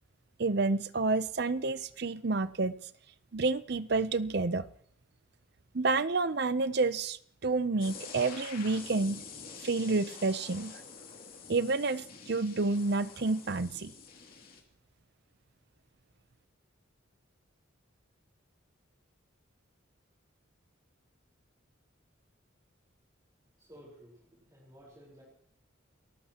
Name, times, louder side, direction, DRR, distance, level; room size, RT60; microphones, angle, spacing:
voice 1, 0.4-2.8 3.3-4.7 5.7-9.2 9.6-10.7 11.5-13.9, right 3 dB, 50° right, 15 dB, 0.6 m, -29 dB
sound 1, 7.8-14.6, left 5 dB, 45° left, 2.7 m, -47 dB
voice 2, 23.6-25.2, equal, 20° right, -5 dB, 4.5 m, -54 dB
29.0 x 14.0 x 3.0 m, 0.64 s
head